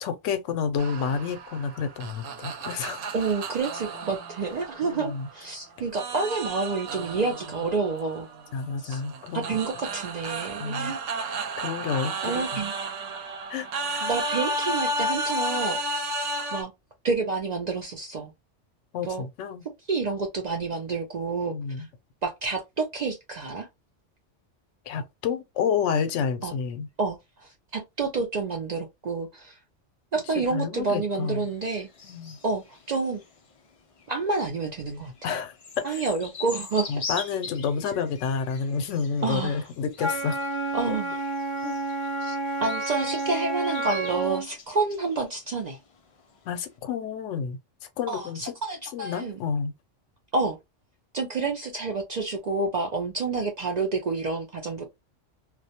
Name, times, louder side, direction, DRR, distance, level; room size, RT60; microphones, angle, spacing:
voice 1, 0.0-3.0 4.8-5.3 8.5-9.6 10.6-10.9 11.6-12.7 13.5-14.1 18.9-19.6 21.5-21.9 24.9-26.9 30.5-31.5 32.0-32.4 35.2-35.5 35.9-36.0 36.9-40.5 40.9-41.0 41.6-41.7 46.5-47.6 48.0-48.5 48.9-49.7, left 6 dB, 80° left, 0.9 m, -30 dB
sound 1, 0.8-5.5 5.9-16.6, right 1 dB, 90° right, 0.9 m, -33 dB
voice 2, 3.1-8.3 8.8-9.0 9.3-11.0 12.2-12.7 14.0-15.8 16.5-16.7 17.0-18.3 19.0-19.2 19.9-21.9 22.2-23.7 26.4-26.5 27.0-29.6 30.1-31.9 32.4-33.2 34.1-35.3 35.8-36.9 39.2-39.6 40.7-41.1 42.2-45.8 48.1-49.4 50.3-50.6 51.1-54.9, right 4 dB, 70° right, 0.4 m, -29 dB
sound 2, 31.1-46.8, left 4 dB, 55° left, 0.4 m, -43 dB
Wind instrument woodwind instrument, 40.0-44.5, right 2 dB, 45° right, 0.9 m, -30 dB
2.3 x 2.1 x 2.7 m
omnidirectional pair, 1.3 m